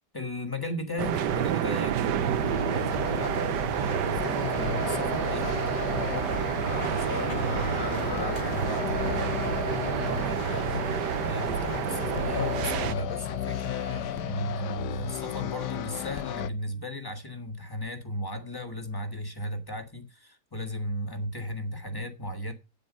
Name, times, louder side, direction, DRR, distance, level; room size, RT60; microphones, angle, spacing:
voice 1, 0.1-5.6 6.5-22.5, left 1 dB, 15° left, 1.5 m, -35 dB
sound 1, 1.0-12.9, right 10 dB, 85° right, 1.4 m, -29 dB
sound 2, 2.4-16.5, left 9 dB, 75° left, 1.4 m, -34 dB
sound 3, 4.2-11.8, left 2 dB, 55° left, 2.4 m, -42 dB
9.3 x 9.1 x 5.3 m
omnidirectional pair, 1.8 m